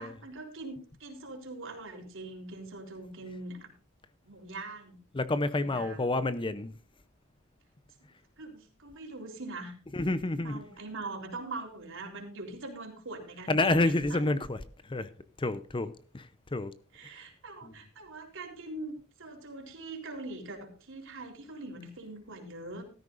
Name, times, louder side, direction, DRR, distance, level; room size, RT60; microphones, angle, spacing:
voice 1, 0.0-3.7 4.2-5.0 5.5-6.0 8.4-9.7 10.3-14.2 16.9-22.8, right 2 dB, 60° right, 3.8 m, -42 dB
voice 2, 5.1-6.7 9.9-10.6 13.5-15.1 15.4-16.7 17.0-17.2 17.6-17.7, left 2 dB, 25° left, 0.7 m, -29 dB
16.0 x 13.5 x 2.6 m
head